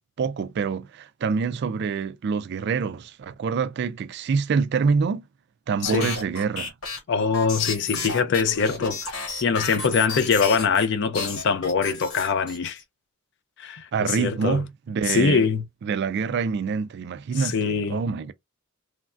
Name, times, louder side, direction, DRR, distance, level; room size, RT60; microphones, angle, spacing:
voice 1, 0.2-5.2 5.7-6.7 13.9-15.4 15.8-18.3, right 5 dB, 50° right, 0.3 m, -26 dB
sound 1, 5.8-10.9 11.1-12.8, left 4 dB, 90° left, 1.3 m, -32 dB
voice 2, 7.1-12.8 13.6-14.6 15.1-15.6 17.4-18.0, left 5 dB, 55° left, 0.4 m, -23 dB
3.1 x 2.2 x 2.4 m
head